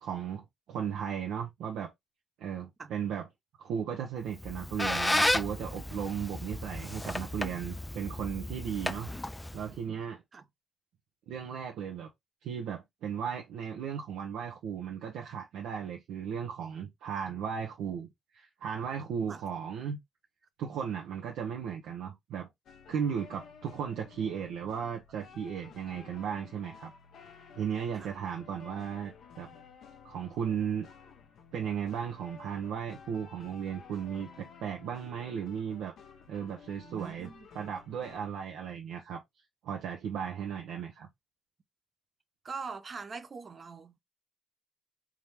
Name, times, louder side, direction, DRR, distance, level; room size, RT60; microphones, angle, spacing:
voice 1, 0.0-1.9 2.4-3.3 3.6-9.1 9.5-10.2 11.3-12.1 12.4-20.0 20.6-22.5 22.9-26.9 27.6-29.5 30.0-30.9 31.5-35.9 36.3-37.3 37.5-39.2 39.6-41.1, right 7 dB, 85° right, 0.8 m, -36 dB
Squeak, 4.3-9.8, left 1 dB, 10° left, 0.4 m, -33 dB
sound 1, 22.7-38.3, left 6 dB, 70° left, 1.0 m, -53 dB
voice 2, 36.8-37.8 42.4-44.0, right 5 dB, 40° right, 0.8 m, -43 dB
3.6 x 2.9 x 3.3 m
cardioid pair, 90°, 0 cm